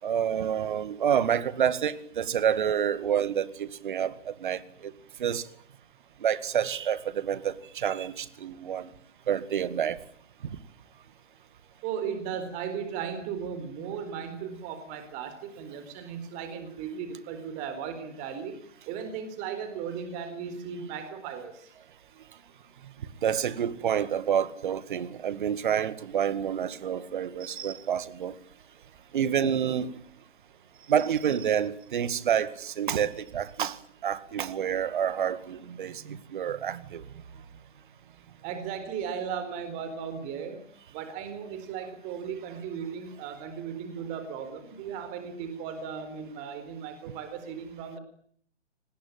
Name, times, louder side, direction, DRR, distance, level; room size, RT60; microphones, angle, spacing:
voice 1, 0.0-4.9 5.2-5.4 6.2-8.9 9.3-10.0 23.2-28.3 29.1-29.9 30.9-37.0, right 9 dB, 45° right, 16 dB, 2.1 m, -28 dB
voice 2, 11.8-18.6 18.9-21.6 38.4-40.6 40.9-48.0, right 7 dB, 20° right, 9 dB, 4.2 m, -36 dB
27.5 x 20.0 x 9.0 m, 0.63 s
figure-of-eight pair, 130°, 36 cm